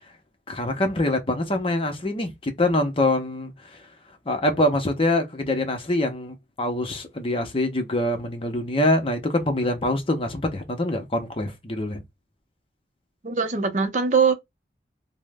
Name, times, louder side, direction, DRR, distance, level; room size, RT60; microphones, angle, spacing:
voice 1, 0.5-3.8 4.3-12.0, left 1 dB, 30° left, 0.6 m, -24 dB
voice 2, 13.2-14.3, right 5 dB, 45° right, 0.6 m, -21 dB
3.0 x 2.0 x 3.3 m
head